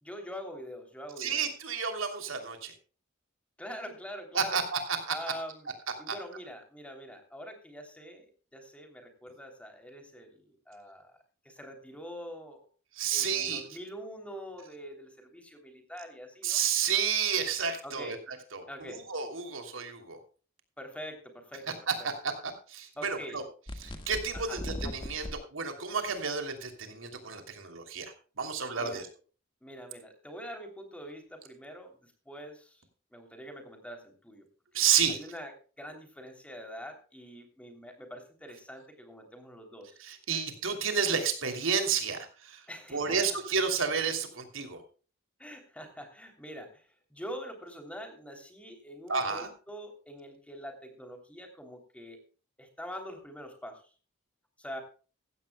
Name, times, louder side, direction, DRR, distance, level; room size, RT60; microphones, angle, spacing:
voice 1, 0.0-1.5 3.6-4.6 5.1-5.7 6.0-8.3 8.5-11.1 11.4-12.6 13.1-16.6 17.8-18.2 18.7-19.0 20.8-21.6 22.0-22.1 23.0-23.4 24.3-24.6 28.8-29.0 29.6-32.8 33.1-34.5 34.7-35.5 35.8-40.0 42.7-43.2 45.4-52.2 52.6-53.8 54.6-54.8, equal, 5° left, 4 dB, 3.1 m, -44 dB
voice 2, 1.2-2.7 4.3-5.2 6.1-6.2 12.9-13.6 16.4-20.2 21.9-23.4 23.8-29.1 34.7-35.2 40.0-42.7 42.9-44.8 49.1-49.5, right 6 dB, 75° right, 6 dB, 3.0 m, -31 dB
sound 1, 23.7-25.3, left 1 dB, 25° left, 1.7 m, -38 dB
15.5 x 15.5 x 2.2 m, 0.36 s
head